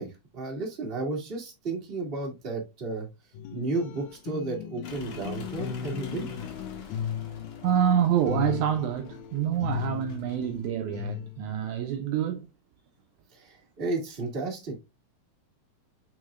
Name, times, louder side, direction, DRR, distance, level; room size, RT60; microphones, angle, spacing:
voice 1, 0.0-3.1 3.5-6.3 13.3-14.8, right 3 dB, 20° right, 1.8 m, -33 dB
sound 1, 3.3-11.6, left 9 dB, 85° left, 1.6 m, -37 dB
sound 2, 4.8-10.5, left 4 dB, 60° left, 2.5 m, -47 dB
voice 2, 7.6-12.5, right 9 dB, 75° right, 1.8 m, -27 dB
6.4 x 6.2 x 2.4 m
omnidirectional pair, 3.9 m